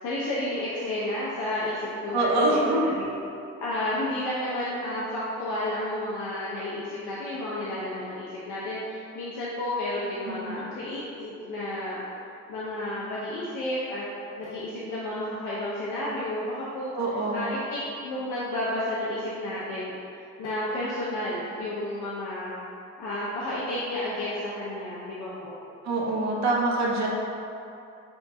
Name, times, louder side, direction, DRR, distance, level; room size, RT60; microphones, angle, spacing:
voice 1, 0.0-3.1 3.6-12.0 12.5-14.0 14.4-16.9 17.3-22.6 23.0-25.6, left 1 dB, 80° left, -7 dB, 0.7 m, -31 dB
voice 2, 2.1-2.9 10.3-10.7 16.9-17.5 25.8-27.1, right 2 dB, 65° right, -3 dB, 0.8 m, -25 dB
7.0 x 2.4 x 2.7 m, 2.6 s
cardioid pair, 90°, 30 cm